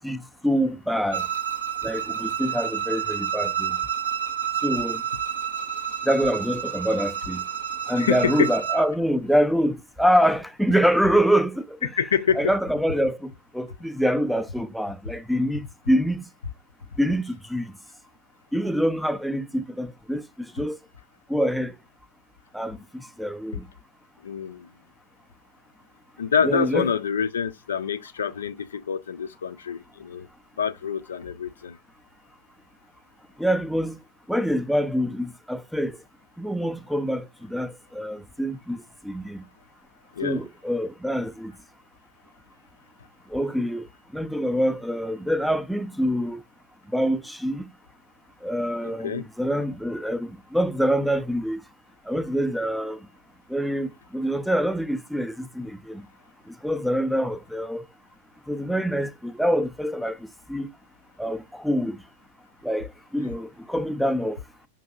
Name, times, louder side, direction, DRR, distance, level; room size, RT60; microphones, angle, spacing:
voice 1, 0.0-1.3 1.8-3.8 4.6-5.0 6.0-7.4 7.9-11.9 12.4-16.2 17.0-17.7 18.5-20.8 21.3-21.8 22.5-23.6 26.4-26.9 33.4-34.0 34.3-36.0 36.4-39.4 40.2-41.5 43.3-43.9 44.1-46.4 46.9-47.6 48.4-51.6 52.1-53.0 53.5-56.1 56.5-57.8 58.5-60.7 61.2-62.0 62.6-64.4, equal, ahead, 0.4 m, -25 dB
Bowed string instrument, 1.1-8.9, right 9 dB, 80° right, 1.0 m, -29 dB
voice 2, 8.0-8.5 12.0-12.5 24.2-24.7 26.2-30.3 30.6-31.8 40.2-40.4 48.8-49.2, left 7 dB, 65° left, 0.4 m, -26 dB
5.2 x 2.7 x 2.3 m
figure-of-eight pair, 90°, 0 cm